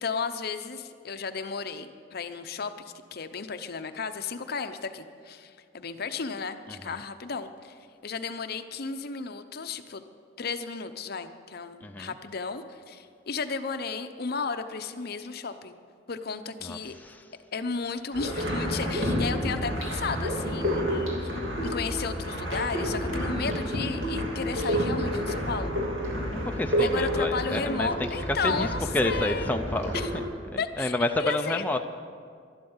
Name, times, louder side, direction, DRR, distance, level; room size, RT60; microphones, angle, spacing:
voice 1, 0.0-10.0 10.4-15.7 16.1-16.9 17.5-25.8 26.8-29.5 29.9-30.1 30.6-31.6, left 5 dB, 55° left, 9 dB, 0.7 m, -34 dB
voice 2, 16.6-17.2 26.6-27.9 28.4-28.7 28.9-29.9 30.8-31.8, left 1 dB, 10° left, 4 dB, 0.5 m, -29 dB
sound 1, 18.1-30.2, equal, 80° right, 2.8 m, -29 dB
12.0 x 11.5 x 7.2 m, 2.1 s
head